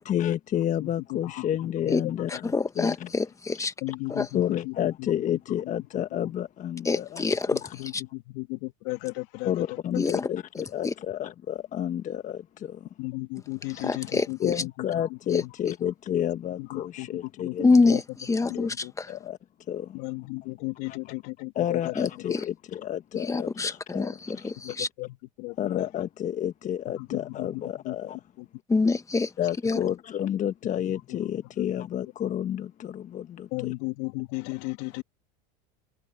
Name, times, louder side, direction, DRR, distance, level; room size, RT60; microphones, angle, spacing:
voice 1, 0.0-3.1 4.3-7.7 9.4-12.9 14.4-17.8 18.4-18.7 19.1-19.4 19.7-20.0 20.9-21.0 21.5-24.5 25.6-28.2 29.4-33.7, left 10 dB, 35° left, 1.2 m, -30 dB
voice 2, 0.8-1.5 1.8-2.4 3.8-5.4 5.9-6.3 7.5-9.8 10.1-10.2 13.0-15.5 16.6-18.0 18.4-18.9 19.9-22.1 24.6-25.9 27.0-28.0 28.4-28.5 30.9-31.2 31.6-31.8 33.5-35.0, left 24 dB, 65° left, 2.4 m, -35 dB
voice 3, 2.3-3.7 4.1-4.3 6.9-7.6 7.9-8.0 10.0-10.3 10.8-10.9 13.8-14.3 15.3-15.4 17.6-18.0 18.3-19.1 22.0-22.4 23.2-24.9 28.7-29.3 29.6-29.8, left 3 dB, 15° left, 1.7 m, -25 dB
supercardioid pair, 100°, 21 cm